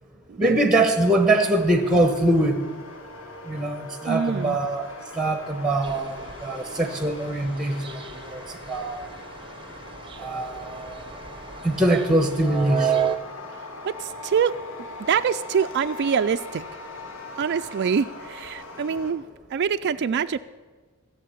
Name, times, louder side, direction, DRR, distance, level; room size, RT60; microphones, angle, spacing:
voice 1, 0.4-2.6 3.5-4.9 5.1-8.4 8.7-9.0 10.2-10.9 11.6-13.0, right 1 dB, 5° right, 7 dB, 1.1 m, -23 dB
sound 1, 1.0-19.1, left 3 dB, 65° left, 1.7 m, -41 dB
voice 2, 4.1-4.6 13.8-14.5 15.1-16.7 17.4-19.2 19.5-20.4, right 7 dB, 50° right, 8 dB, 0.4 m, -25 dB
sound 2, 5.8-13.2, right 8 dB, 25° right, 0.7 m, -33 dB
16.0 x 7.5 x 8.6 m, 1.4 s
head